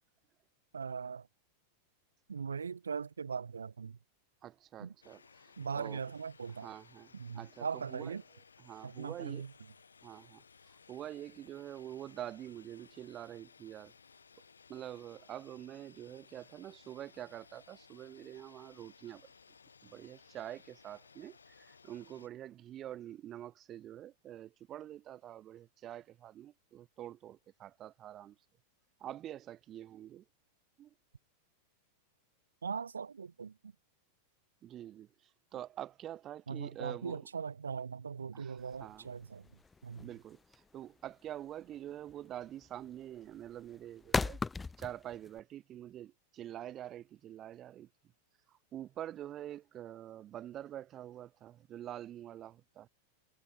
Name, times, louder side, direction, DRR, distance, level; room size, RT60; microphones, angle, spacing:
voice 1, 0.7-1.3 2.3-4.0 4.8-4.9 5.6-6.7 7.1-8.2 8.8-9.5 32.6-33.5 36.5-39.4 39.8-40.1, right 6 dB, 75° right, 0.8 m, -40 dB
voice 2, 4.4-6.0 6.6-8.2 8.6-9.5 10.0-13.9 14.7-19.3 19.8-28.4 29.0-30.2 30.8-30.9 34.6-37.3 38.3-39.1 40.0-44.4 44.8-47.9 48.5-52.9, right 12 dB, 30° right, 0.9 m, -46 dB
sound 1, 5.0-22.3, left 5 dB, 75° left, 3.5 m, -61 dB
sound 2, 38.6-45.4, left 4 dB, 10° left, 0.4 m, -38 dB
figure-of-eight pair, 90°, 0 cm